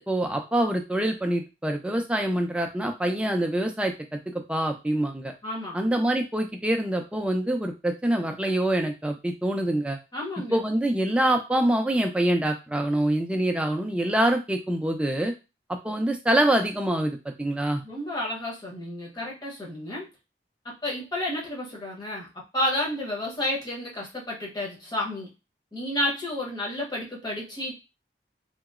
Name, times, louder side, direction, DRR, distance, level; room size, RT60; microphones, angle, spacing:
voice 1, 0.0-5.3 5.7-10.0 10.5-15.3 15.7-17.8, right 1 dB, 5° right, 4 dB, 0.4 m, -25 dB
voice 2, 5.4-5.8 10.1-10.6 17.8-20.1 20.6-25.3 25.7-27.7, left 1 dB, 25° left, -4 dB, 0.9 m, -31 dB
2.9 x 2.8 x 2.4 m, 0.27 s
head